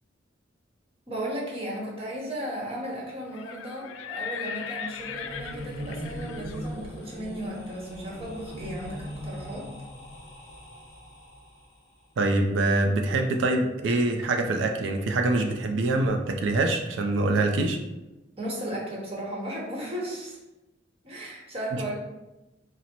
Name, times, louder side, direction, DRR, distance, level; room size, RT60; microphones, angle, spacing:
voice 1, 1.1-9.7 18.4-20.4 21.0-22.0, right 1 dB, 30° right, -3 dB, 1.0 m, -35 dB
Livestock farm animals working animals, 3.2-9.0, left 7 dB, 85° left, 0.3 m, -40 dB
sound 1, 4.8-11.8, equal, 15° left, 1.0 m, -40 dB
voice 2, 12.2-17.8 21.7-21.8, right 2 dB, 75° right, 4 dB, 0.4 m, -24 dB
4.1 x 2.0 x 4.3 m, 1.0 s
head